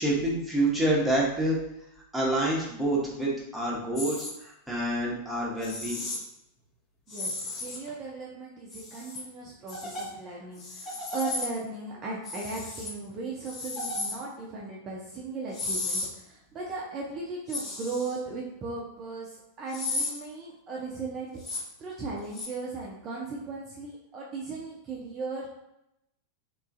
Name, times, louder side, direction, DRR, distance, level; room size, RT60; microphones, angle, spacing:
voice 1, 0.0-1.6 2.1-6.0, right 1 dB, 5° right, -5 dB, 0.8 m, -27 dB
sound 1, 4.0-4.3 5.6-6.2 7.1-7.9 8.7-9.2 9.7-10.1 10.6-11.5 12.3-12.9 13.5-14.1 15.5-16.1 17.5-18.2 19.7-20.1 21.4-21.6 22.3-22.5, left 2 dB, 25° left, 0.7 m, -34 dB
voice 2, 7.1-25.5, right 3 dB, 30° right, -4 dB, 0.5 m, -37 dB
2.9 x 2.4 x 2.5 m, 0.84 s
figure-of-eight pair, 90°, 0 cm